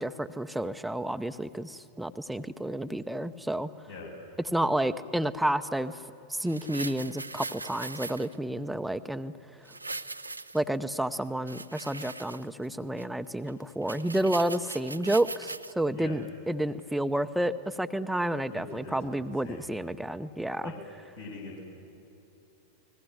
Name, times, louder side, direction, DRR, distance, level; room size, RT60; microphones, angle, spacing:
voice 1, 0.0-3.7 4.5-6.0 6.3-9.3 10.5-20.7, right 1 dB, 5° right, 11 dB, 0.7 m, -30 dB
sound 1, 6.5-8.3 9.7-10.8 11.3-12.7 13.0-13.1 13.5-13.6 13.8-15.7 16.2-16.3, right 3 dB, 85° right, 0.7 m, -40 dB
voice 2, 18.5-19.7 20.6-20.8 21.2-21.6, left 3 dB, 75° left, -4 dB, 7.0 m, -43 dB
29.5 x 20.5 x 8.0 m, 2.8 s
figure-of-eight pair, 90°, 0 cm